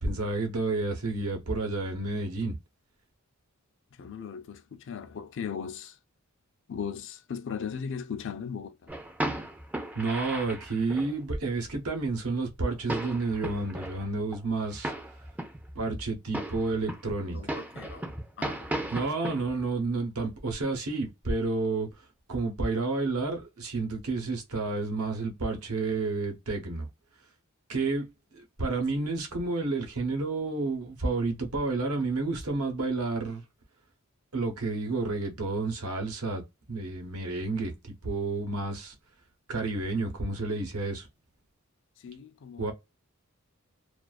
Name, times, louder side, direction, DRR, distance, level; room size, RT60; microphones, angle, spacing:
voice 1, 0.0-2.6 9.9-14.9 15.7-17.4 18.9-21.9 22.3-26.9 27.7-33.4 34.3-36.4 36.7-38.9 39.5-41.1 42.6-42.7, right 3 dB, 80° right, 0.9 m, -30 dB
voice 2, 3.9-6.0 6.7-8.9 17.3-18.1 18.4-18.9 20.7-20.8 29.0-29.1 42.0-42.7, left 7 dB, 60° left, 0.5 m, -38 dB
sound 1, 8.9-11.2 11.4-11.5 11.7-11.8 12.3-12.4 12.7-14.0 14.3-14.4 14.7-16.1 16.3-19.6, right 1 dB, 5° right, 0.4 m, -36 dB
2.4 x 2.3 x 2.4 m
head